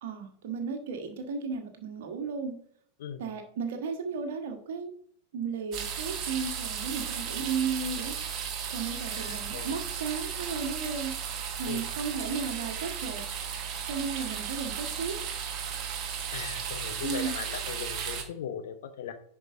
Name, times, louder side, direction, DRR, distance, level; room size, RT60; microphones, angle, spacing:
voice 1, 0.0-2.5 3.2-4.9 5.3-8.2 8.7-11.1 11.6-13.2 13.9-15.1 17.0-17.4, right 5 dB, 55° right, 5 dB, 1.4 m, -34 dB
sound 1, 5.7-18.2, right 7 dB, 35° right, 1.2 m, -35 dB
voice 2, 9.1-9.7 11.6-11.9 16.3-19.1, left 8 dB, 55° left, 9 dB, 0.8 m, -39 dB
10.5 x 4.8 x 2.6 m, 0.62 s
figure-of-eight pair, 90°, 0 cm